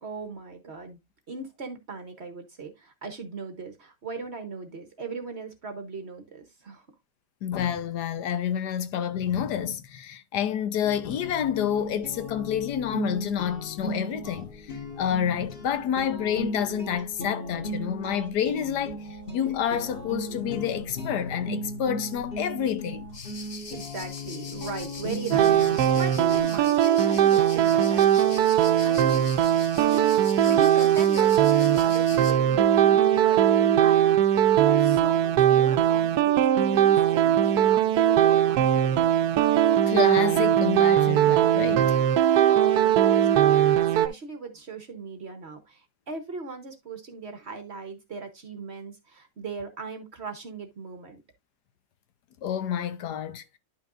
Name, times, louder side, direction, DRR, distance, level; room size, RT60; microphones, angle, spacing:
voice 1, 0.0-1.0 1.3-6.9 23.7-29.6 29.8-30.1 30.5-39.0 42.5-43.7 44.0-51.2, right 4 dB, 45° right, 1.0 m, -38 dB
voice 2, 7.4-23.1 39.8-41.9 52.4-53.6, left 9 dB, 75° left, 1.2 m, -29 dB
sound 1, 10.8-26.4, equal, 35° left, 1.7 m, -37 dB
sound 2, 23.1-32.3, left 4 dB, 55° left, 0.4 m, -43 dB
sound 3, 25.3-44.1, right 10 dB, 70° right, 1.1 m, -20 dB
10.5 x 5.7 x 2.5 m
omnidirectional pair, 1.9 m